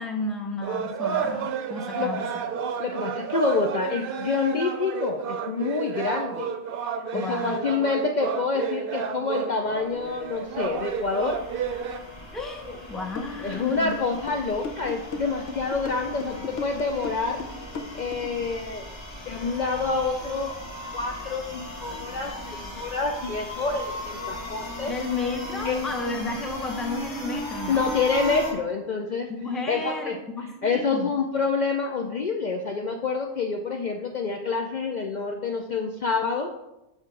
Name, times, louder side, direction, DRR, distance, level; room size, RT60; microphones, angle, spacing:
voice 1, 0.0-2.4 7.1-7.6 12.3-14.0 24.9-27.8 29.3-31.1, left 2 dB, ahead, 3 dB, 0.6 m, -32 dB
sound 1, 0.6-12.0, right 7 dB, 60° right, 0.7 m, -31 dB
voice 2, 1.9-2.2 2.8-6.5 7.1-11.4 13.4-17.4 17.9-18.9 19.3-20.6 20.9-24.9 25.6-25.8 27.7-29.3 29.7-30.2 30.6-36.5, left 4 dB, 55° left, 3 dB, 0.6 m, -27 dB
sound 2, 9.8-28.5, left 2 dB, 25° left, 1.3 m, -38 dB
sound 3, 13.1-18.4, left 4 dB, 70° left, 0.9 m, -36 dB
6.5 x 3.6 x 6.0 m, 0.93 s
omnidirectional pair, 1.1 m